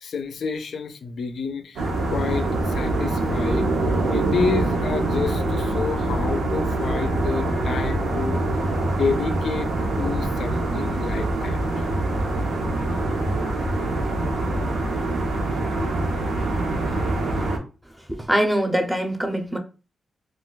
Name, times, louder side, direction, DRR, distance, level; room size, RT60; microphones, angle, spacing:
voice 1, 0.0-3.8 4.1-8.4 8.8-12.2, left 5 dB, 75° left, 0.4 m, -29 dB
sound 1, 1.8-17.6, right 2 dB, 85° right, 0.7 m, -24 dB
voice 2, 18.1-19.6, equal, 10° right, 0.6 m, -23 dB
2.3 x 2.2 x 3.8 m
wide cardioid pair, 115°, 0 cm